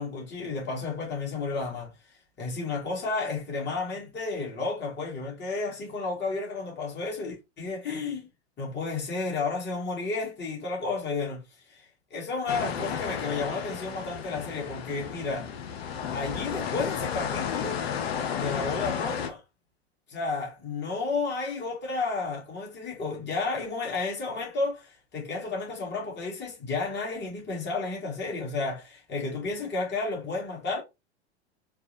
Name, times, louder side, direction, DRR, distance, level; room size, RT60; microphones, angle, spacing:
voice 1, 0.0-1.9 2.4-8.3 8.6-11.4 11.7-15.5 16.1-17.8 18.4-19.4 20.1-30.8, left 3 dB, 30° left, 2.1 m, -32 dB
sound 1, 12.5-19.3, left 7 dB, 65° left, 1.0 m, -33 dB
4.6 x 2.4 x 2.8 m
hypercardioid pair, 90°, 33 cm